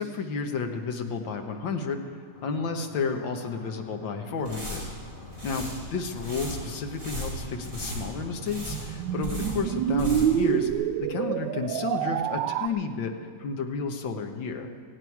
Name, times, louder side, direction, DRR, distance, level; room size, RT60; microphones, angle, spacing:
voice 1, 0.0-2.0 2.4-4.8 5.4-14.7, left 4 dB, 80° left, 5 dB, 1.9 m, -32 dB
sound 1, 2.3-10.2, left 2 dB, 30° left, 1.2 m, -46 dB
sound 2, 4.3-10.4 10.7-10.8, left 1 dB, 30° right, 5.1 m, -37 dB
sound 3, 7.7-12.7, right 10 dB, 80° right, 1.2 m, -27 dB
17.5 x 16.5 x 4.7 m, 2.1 s
omnidirectional pair, 2.0 m